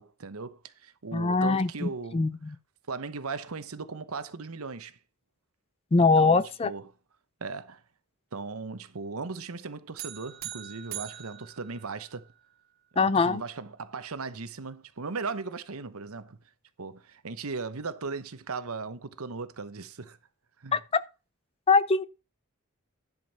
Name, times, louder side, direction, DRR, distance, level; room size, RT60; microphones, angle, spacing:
voice 1, 0.0-2.3 2.9-5.0 6.0-6.9 7.4-7.8 8.3-12.3 12.9-16.4 16.8-20.2 20.6-20.8, right 4 dB, 85° right, 0.9 m, -37 dB
voice 2, 1.1-2.6 5.9-6.7 13.0-13.4 20.7-21.0 21.7-22.0, left 4 dB, 25° left, 0.4 m, -23 dB
sound 1, 10.0-12.5, right 13 dB, 45° right, 1.1 m, -42 dB
11.0 x 5.2 x 5.4 m
head